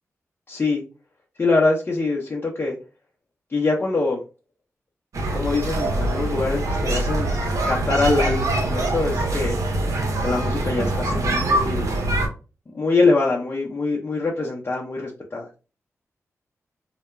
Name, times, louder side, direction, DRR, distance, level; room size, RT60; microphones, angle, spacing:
voice 1, 0.5-0.8 1.4-2.7 3.5-4.2 5.3-7.3 7.7-9.6 10.2-11.9 12.7-15.5, left 3 dB, 40° left, -3 dB, 0.6 m, -23 dB
sound 1, 5.1-12.3, right 1 dB, 70° right, 0.7 m, -24 dB
2.2 x 2.1 x 3.0 m, 0.33 s
cardioid pair, 70°, 6 cm